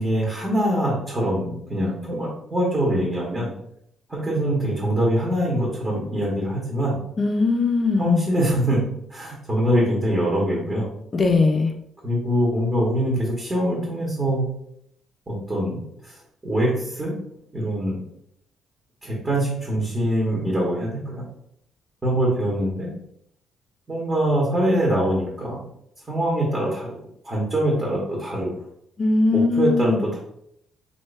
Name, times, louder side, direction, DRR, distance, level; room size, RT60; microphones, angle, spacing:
voice 1, 0.0-3.5 4.1-7.0 8.0-10.9 12.0-14.4 15.3-16.2 16.4-17.2 17.5-18.0 19.0-21.2 22.0-22.9 23.9-25.6 26.1-27.0 27.2-28.5 29.3-30.2, right 1 dB, 20° right, -5 dB, 1.2 m, -23 dB
voice 2, 7.2-8.2 11.1-11.7 29.0-30.1, left 3 dB, 35° left, 6 dB, 0.5 m, -20 dB
3.1 x 2.6 x 3.3 m, 0.73 s
cardioid pair, 90°, 0 cm